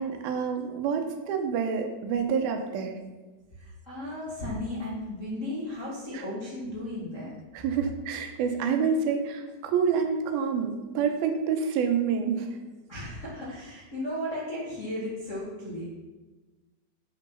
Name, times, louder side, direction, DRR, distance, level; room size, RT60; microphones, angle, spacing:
voice 1, 0.0-3.0 6.1-6.2 7.5-12.6, right 6 dB, 85° right, 5 dB, 2.7 m, -28 dB
voice 2, 3.5-7.4 12.9-15.8, left 1 dB, 45° left, -7 dB, 1.0 m, -35 dB
7.7 x 6.0 x 5.6 m, 1.2 s
omnidirectional pair, 4.3 m